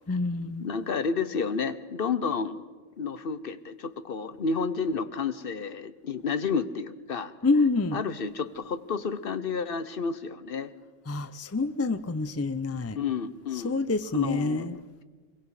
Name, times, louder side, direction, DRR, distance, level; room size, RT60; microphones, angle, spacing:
voice 1, 0.1-0.7 7.4-8.0 11.1-13.0 13.6-14.7, left 3 dB, 25° left, 0.3 m, -27 dB
voice 2, 0.6-2.6 3.0-7.3 7.9-10.7 13.0-13.7 14.1-15.0, left 5 dB, 50° left, 0.9 m, -31 dB
24.5 x 22.0 x 4.9 m
omnidirectional pair, 1.4 m